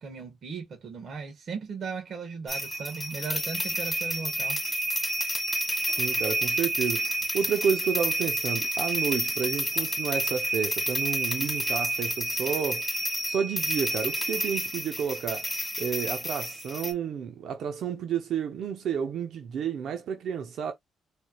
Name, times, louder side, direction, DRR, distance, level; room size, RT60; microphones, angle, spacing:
voice 1, 0.0-4.6, right 5 dB, 55° right, 1.7 m, -37 dB
sound 1, 2.5-16.9, equal, 10° left, 2.4 m, -29 dB
voice 2, 5.9-12.9 13.2-15.5 15.8-20.7, right 7 dB, 70° right, 0.7 m, -31 dB
4.3 x 3.4 x 2.4 m
cardioid pair, 90°, 0 cm